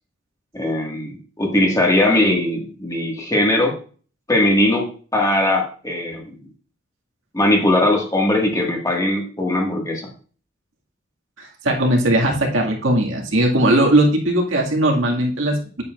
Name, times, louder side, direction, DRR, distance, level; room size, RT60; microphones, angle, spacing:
voice 1, 0.5-3.8 4.3-6.4 7.3-10.1, left 1 dB, 15° left, 0 dB, 1.8 m, -20 dB
voice 2, 11.4-15.8, right 1 dB, 75° right, 0 dB, 2.0 m, -18 dB
8.5 x 8.4 x 2.5 m, 0.40 s
head